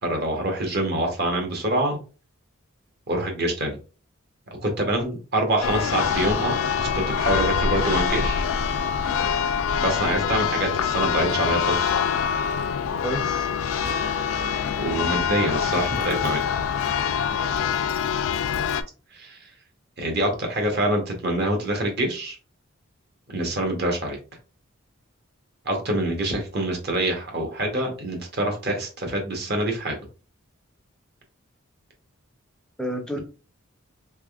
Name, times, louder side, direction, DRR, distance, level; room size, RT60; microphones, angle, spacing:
voice 1, 0.0-2.0 3.1-3.8 4.6-8.4 9.8-12.0 14.8-16.4 19.1-19.5 20.0-22.4 23.3-24.2 25.6-30.0, right 1 dB, 50° right, 2 dB, 1.0 m, -25 dB
Church bell, 5.6-18.8, left 7 dB, 75° left, 0.4 m, -25 dB
voice 2, 13.0-13.5 18.5-18.7 32.8-33.2, equal, 5° left, 2 dB, 0.5 m, -30 dB
3.4 x 3.2 x 2.3 m, 0.34 s
head